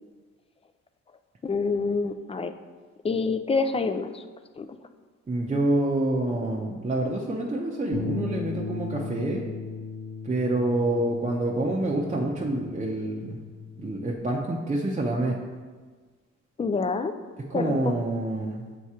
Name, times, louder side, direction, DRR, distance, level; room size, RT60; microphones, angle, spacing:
voice 1, 1.4-2.5 3.0-4.2 4.6-4.7 16.6-17.1 17.5-17.9, left 4 dB, 20° left, 8 dB, 0.3 m, -27 dB
voice 2, 5.3-9.4 10.2-13.4 13.8-15.4 17.4-18.6, right 2 dB, 20° right, -3 dB, 0.7 m, -27 dB
Bass guitar, 7.9-14.2, left 5 dB, 80° left, 0.8 m, -37 dB
7.0 x 2.9 x 4.8 m, 1.4 s
cardioid pair, 90°, 30 cm